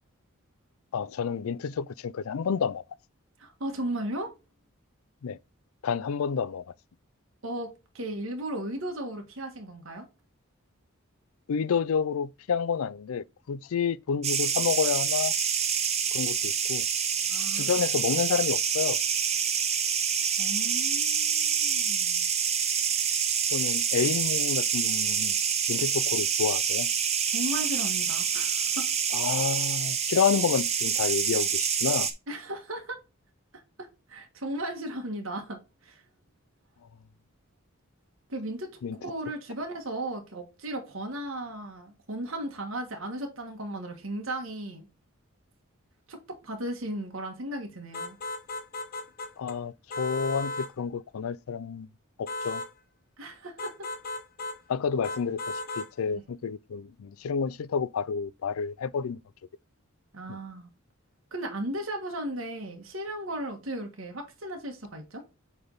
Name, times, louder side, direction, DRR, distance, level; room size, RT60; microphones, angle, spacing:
voice 1, 0.9-2.8 5.2-5.4 5.8-6.6 11.5-15.3 16.1-16.9 17.5-19.0 23.5-25.3 25.7-26.9 29.1-32.1 38.8-39.0 49.4-51.9 52.2-52.6 54.7-59.2, left 6 dB, 80° left, 0.4 m, -29 dB
voice 2, 3.4-4.3 7.4-7.7 7.9-10.1 17.3-17.7 20.4-22.3 27.3-28.9 32.3-33.0 33.8-36.0 38.3-38.7 39.0-44.9 46.1-48.2 53.2-53.7 56.1-56.2 60.1-60.7 61.3-65.2, right 1 dB, 65° right, 1.5 m, -36 dB
sound 1, 14.2-32.1, right 7 dB, 30° right, 0.8 m, -27 dB
sound 2, 47.9-49.6 49.9-50.7 52.3-52.7 53.6-54.6 55.0-55.9, left 2 dB, 45° left, 1.0 m, -36 dB
7.9 x 3.5 x 3.9 m
head